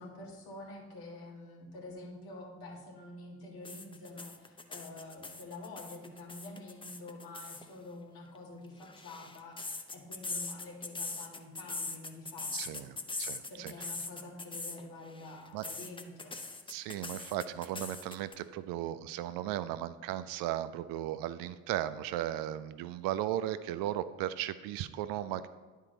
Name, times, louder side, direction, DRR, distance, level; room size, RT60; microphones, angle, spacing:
voice 1, 0.0-12.9 13.5-16.4, left 2 dB, 60° left, -1 dB, 2.0 m, -47 dB
sound 1, 3.6-7.6 8.6-14.8 15.1-18.3, left 3 dB, 10° left, 0.6 m, -41 dB
voice 2, 12.5-13.7 15.5-15.7 16.7-25.5, right 12 dB, 60° right, 13 dB, 0.5 m, -36 dB
9.9 x 4.6 x 3.9 m, 1.4 s
hypercardioid pair, 55°, 41 cm